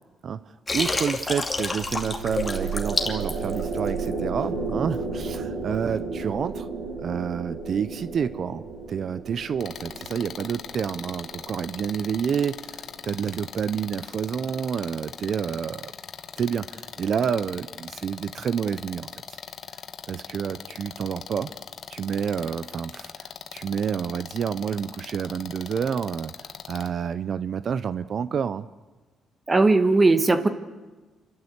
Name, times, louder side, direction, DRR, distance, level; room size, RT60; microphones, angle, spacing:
voice 1, 0.2-6.7 7.0-15.9 16.4-19.1 20.1-21.5 21.9-26.3 26.7-28.7, right 7 dB, 55° right, 14 dB, 0.6 m, -29 dB
Water, 0.7-4.1, left 3 dB, 25° left, 2.5 m, -28 dB
sound 1, 1.5-12.9, right 4 dB, 80° right, 4.6 m, -33 dB
sound 2, 9.6-26.9, left 8 dB, 60° left, 1.3 m, -40 dB
voice 2, 29.5-30.5, right 3 dB, 25° right, 9 dB, 1.6 m, -18 dB
28.0 x 13.0 x 8.1 m, 1.2 s
cardioid pair, 90°, 0 cm